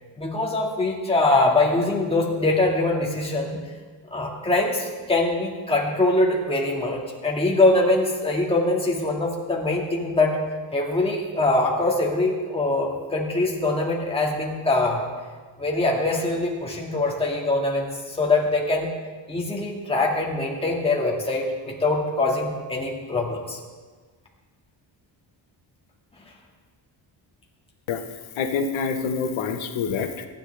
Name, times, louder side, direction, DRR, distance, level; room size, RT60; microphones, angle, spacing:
voice 1, 0.2-3.6 4.1-10.4 10.7-15.1 15.6-18.9 19.3-23.6, left 2 dB, 10° left, -2 dB, 1.9 m, -23 dB
voice 2, 28.4-30.3, left 5 dB, 85° left, 6 dB, 1.3 m, -26 dB
23.0 x 10.5 x 3.4 m, 1.4 s
cardioid pair, 180°, 47 cm